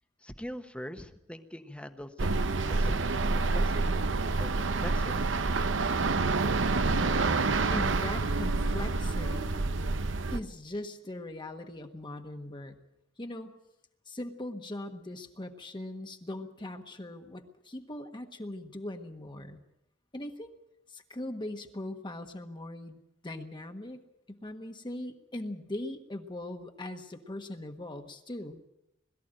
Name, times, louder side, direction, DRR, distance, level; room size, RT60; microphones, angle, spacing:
voice 1, 0.2-4.0 4.4-5.6, equal, 5° left, 8 dB, 1.2 m, -43 dB
sound 1, 2.2-10.4, right 3 dB, 80° right, 0.9 m, -28 dB
voice 2, 7.7-9.7 10.3-12.7 13.2-13.5 14.1-19.6 20.1-20.5 20.9-24.0 24.3-28.7, left 1 dB, 25° left, 5 dB, 1.4 m, -40 dB
22.0 x 13.5 x 9.0 m, 0.87 s
head